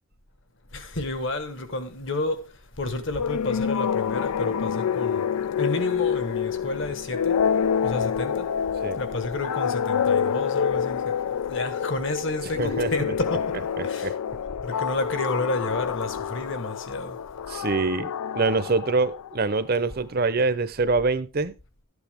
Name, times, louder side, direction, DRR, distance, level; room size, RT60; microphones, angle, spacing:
voice 1, 0.7-2.5 2.8-5.2 5.6-7.4 7.8-8.5 9.0-13.5 13.8-14.1 14.6-17.2, left 2 dB, 55° left, 1.4 m, -30 dB
sound 1, 3.2-19.6, left 7 dB, 85° left, 0.4 m, -27 dB
voice 2, 12.6-13.1 14.0-14.1 17.5-21.5, right 3 dB, 45° right, 0.7 m, -25 dB
12.5 x 8.3 x 3.5 m
head